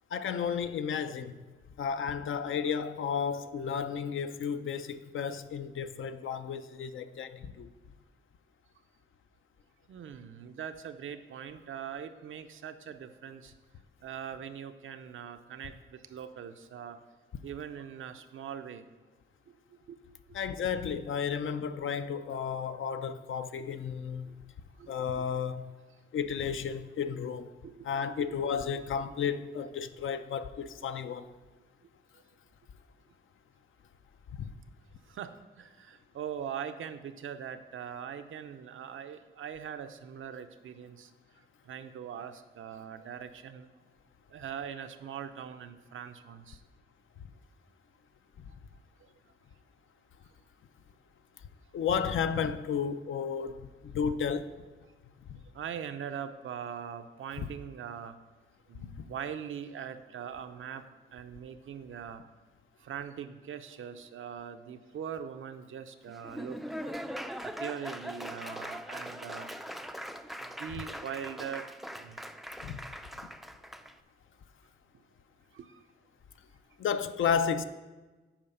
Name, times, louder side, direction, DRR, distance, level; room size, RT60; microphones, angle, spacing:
voice 1, 0.1-1.4 1.8-7.7 20.3-24.3 24.9-25.7 26.1-27.5 27.8-31.3 34.4-34.5 51.7-54.5 55.3-55.4 57.4-57.5 58.8-59.0 70.7-70.8 72.6-72.8 76.8-77.6, left 7 dB, 70° left, 0.5 m, -33 dB
voice 2, 9.9-13.5 14.0-17.0 17.4-18.9 19.9-20.0 24.8-25.1 27.6-28.3 35.1-41.1 41.7-43.7 44.3-46.6 55.5-58.2 58.7-60.8 61.1-62.2 62.8-66.6 67.4-69.5 70.4-71.7 72.0-72.2 75.5-75.8, right 8 dB, 75° right, 0.6 m, -41 dB
Laughter / Applause, 66.1-73.9, equal, ahead, 0.3 m, -41 dB
8.8 x 4.8 x 5.5 m
cardioid pair, 95°, 21 cm